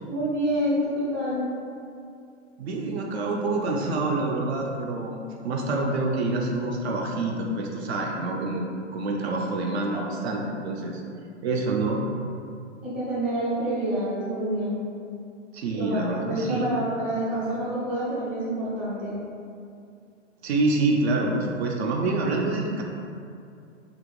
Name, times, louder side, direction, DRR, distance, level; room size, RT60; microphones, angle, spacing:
voice 1, 0.1-1.5 12.8-14.8 15.7-19.2, right 1 dB, 5° right, -12 dB, 0.5 m, -27 dB
voice 2, 2.6-5.2 5.4-11.0 11.4-12.0 15.5-16.7 20.4-22.8, right 2 dB, 60° right, 0 dB, 0.5 m, -27 dB
2.9 x 2.5 x 3.1 m, 2.4 s
hypercardioid pair, 145°, 38 cm